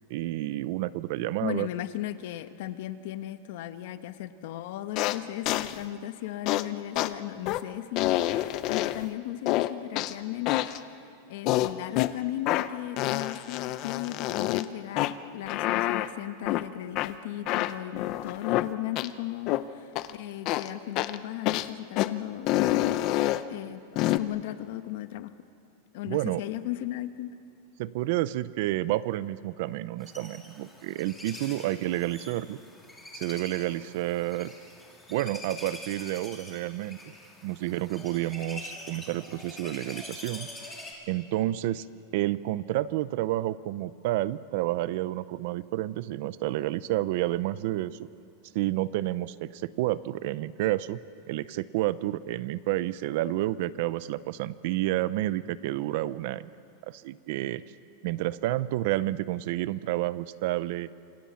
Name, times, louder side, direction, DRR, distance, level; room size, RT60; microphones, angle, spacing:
voice 1, 0.1-1.7 26.1-26.4 27.8-32.6 33.1-34.5 35.1-37.0 37.4-40.5 41.1-41.9 42.1-48.1 48.5-51.0 51.3-56.5 56.9-57.6 58.0-60.9, right 15 dB, 45° right, 17 dB, 0.6 m, -30 dB
voice 2, 1.4-10.7 10.9-23.0 23.5-25.3 25.9-27.3, left 14 dB, 50° left, 11 dB, 1.1 m, -36 dB
sound 1, 4.9-5.2 5.4-5.7 6.5-6.6 6.9-7.1 7.4-7.6 8.0-9.1 9.5-10.1 10.4-10.8 11.4-12.1 12.5-12.7 13.0-14.6 15.0-15.1 15.5-16.1 16.4-16.6 16.9-17.1 17.4-18.7 18.9-19.1 19.5-19.6 19.9-20.1 20.4-20.7 20.9-21.2 21.4-21.7 21.9-22.1 22.5-23.4 23.9-24.2, left 15 dB, 30° left, 0.6 m, -27 dB
sound 2, 30.0-40.9, left 1 dB, 5° left, 2.7 m, -45 dB
27.5 x 25.5 x 7.1 m, 2.5 s
supercardioid pair, 180°, 0 cm